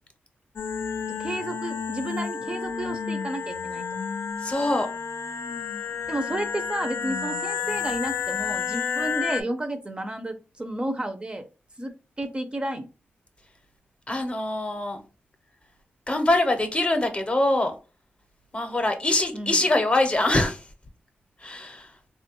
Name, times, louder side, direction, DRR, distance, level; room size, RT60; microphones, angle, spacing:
sound 1, 0.6-9.4, left 6 dB, 90° left, 0.3 m, -31 dB
voice 1, 1.2-3.8 6.1-11.4 11.8-11.9 12.2-12.9 19.3-19.6, right 1 dB, 25° right, 7 dB, 0.4 m, -32 dB
voice 2, 4.4-4.9 14.1-15.0 16.1-17.7 18.5-20.6 21.4-21.9, left 2 dB, 30° left, 7 dB, 0.6 m, -23 dB
3.3 x 2.2 x 2.8 m, 0.32 s
wide cardioid pair, 100°, 4 cm